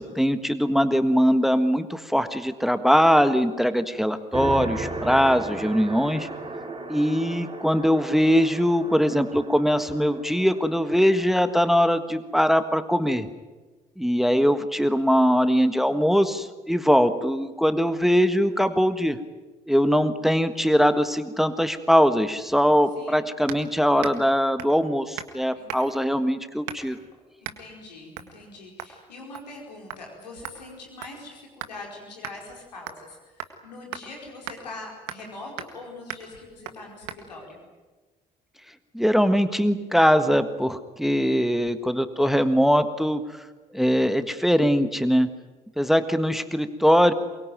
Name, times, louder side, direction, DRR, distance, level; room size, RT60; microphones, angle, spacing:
voice 1, 0.0-6.3 6.9-13.3 14.0-19.2 19.7-27.0 38.9-43.2 43.7-45.3 45.8-47.1, equal, ahead, 11 dB, 1.5 m, -21 dB
sound 1, 4.3-12.0, right 2 dB, 25° right, 4.1 m, -36 dB
sound 2, 23.5-23.7 24.0-24.3 24.6-24.8 25.2-25.4 25.7-26.0 26.7-27.0 27.4-27.6 28.1-28.3 28.8-29.0 29.3-29.6 29.9-30.0 30.4-31.8 32.2-32.4 32.9-33.1 33.4-33.5 33.9-34.0 34.5-34.6 35.1-35.3 35.6-35.8 36.1-36.3 36.6-36.8 37.1-37.2, right 11 dB, 70° right, 1.8 m, -38 dB
voice 2, 27.4-37.6, left 2 dB, 85° left, 0 dB, 4.9 m, -42 dB
23.0 x 23.0 x 9.3 m, 1.3 s
figure-of-eight pair, 45°, 21 cm